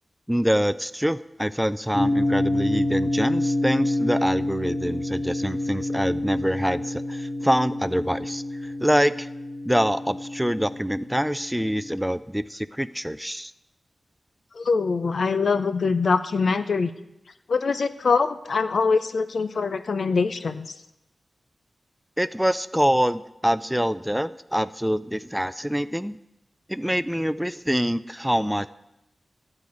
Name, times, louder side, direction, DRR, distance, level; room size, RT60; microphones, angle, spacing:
voice 1, 0.3-9.3 9.7-13.5 22.2-26.2 26.7-28.7, equal, 5° right, 16 dB, 0.4 m, -25 dB
sound 1, 1.9-12.1, left 1 dB, 55° left, 2.2 m, -28 dB
voice 2, 14.5-16.9 17.5-20.7, left 4 dB, 75° left, 12 dB, 0.6 m, -23 dB
12.0 x 4.9 x 8.5 m, 0.90 s
cardioid pair, 50°, 0 cm